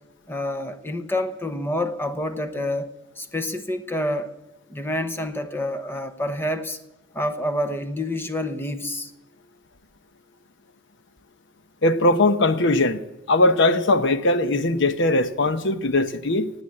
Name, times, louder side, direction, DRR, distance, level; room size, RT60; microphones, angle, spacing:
voice 1, 0.3-4.3 4.7-6.8 7.1-9.1, left 1 dB, 10° left, 0.9 m, -28 dB
voice 2, 11.8-13.0 13.3-16.5, left 2 dB, 60° left, 1.0 m, -20 dB
18.0 x 8.2 x 8.6 m
head